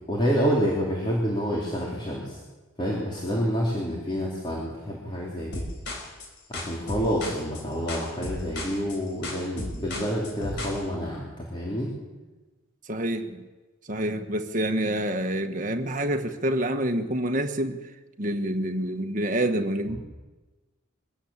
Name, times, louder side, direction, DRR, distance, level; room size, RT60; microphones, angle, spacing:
voice 1, 0.1-2.4 2.8-5.6 6.5-11.9, equal, 25° left, -4 dB, 3.8 m, -28 dB
sound 1, 5.5-10.8, left 2 dB, 55° left, 4.4 m, -35 dB
voice 2, 12.9-13.5 13.9-17.8 18.2-20.0, right 1 dB, 40° right, 6 dB, 1.5 m, -27 dB
23.5 x 18.0 x 7.4 m, 1.2 s
head